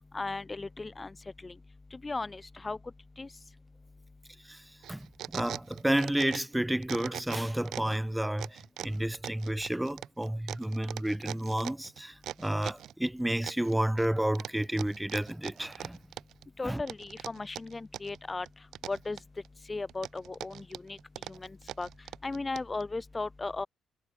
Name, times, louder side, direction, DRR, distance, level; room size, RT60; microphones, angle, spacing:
voice 1, 0.1-1.2 1.4-1.6 1.9-2.8 3.2-3.3 16.6-18.5 18.9-19.2 19.7-21.0 21.3-21.9 22.2-23.7, left 3 dB, 20° left, 6.6 m, -36 dB
sound 1, 4.8-6.6 6.8-8.0 8.4-12.9 13.4-14.1 14.4-16.5 16.9-18.2 18.5-19.5 19.9-22.8, right 11 dB, 75° right, 3.2 m, -41 dB
voice 2, 5.3-16.0 16.6-16.8, right 1 dB, 5° right, 1.2 m, -31 dB
cardioid pair, 90°, 0 cm